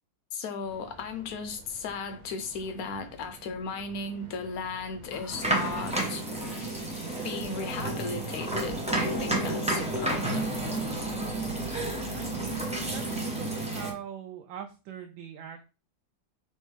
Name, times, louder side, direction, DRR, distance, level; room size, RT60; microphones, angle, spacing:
voice 1, 0.3-6.2 7.2-10.5, left 4 dB, 60° left, 1.0 m, -36 dB
sound 1, 0.6-13.2, right 3 dB, 55° right, 1.3 m, -48 dB
Water tap faucet, 5.0-10.6 11.8-12.0, left 1 dB, 35° left, 0.8 m, -50 dB
sound 2, 5.3-13.9, right 2 dB, 5° right, 0.5 m, -31 dB
voice 2, 12.1-15.7, right 8 dB, 85° right, 1.3 m, -42 dB
4.4 x 3.1 x 3.3 m
omnidirectional pair, 2.0 m